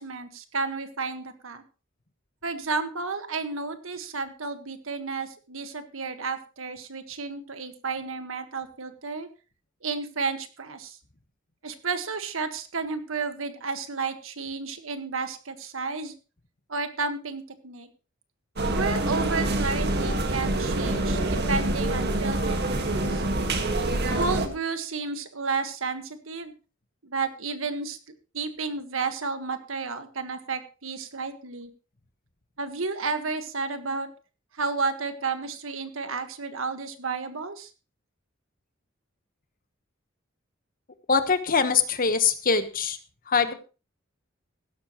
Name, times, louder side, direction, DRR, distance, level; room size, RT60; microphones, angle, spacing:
voice 1, 0.0-1.6 2.4-9.3 9.8-11.0 11.6-16.1 16.7-17.9 18.7-23.2 24.2-26.5 27.0-28.0 28.3-31.7 32.6-34.1 34.6-37.7, right 4 dB, 85° right, 9 dB, 1.6 m, -32 dB
sound 1, 18.6-24.5, right 1 dB, 55° right, 1.8 m, -26 dB
voice 2, 41.1-43.0 43.3-43.5, left 5 dB, 45° left, 10 dB, 1.3 m, -23 dB
16.0 x 12.5 x 3.1 m, 0.33 s
head